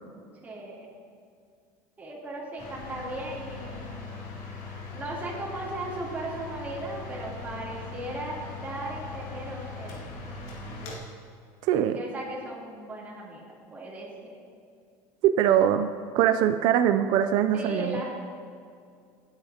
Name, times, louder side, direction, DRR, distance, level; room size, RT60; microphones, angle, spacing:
voice 1, 0.4-0.9 2.0-4.0 4.9-10.0 11.9-14.3 17.5-18.1, right 1 dB, 20° right, -6 dB, 3.2 m, -37 dB
sound 1, 2.6-11.0, left 4 dB, 85° left, 2.2 m, -40 dB
voice 2, 11.6-12.0 15.2-15.9 16.1-18.0, right 10 dB, 65° right, 8 dB, 0.4 m, -22 dB
17.5 x 8.9 x 2.9 m, 2.3 s
cardioid pair, 130°, 8 cm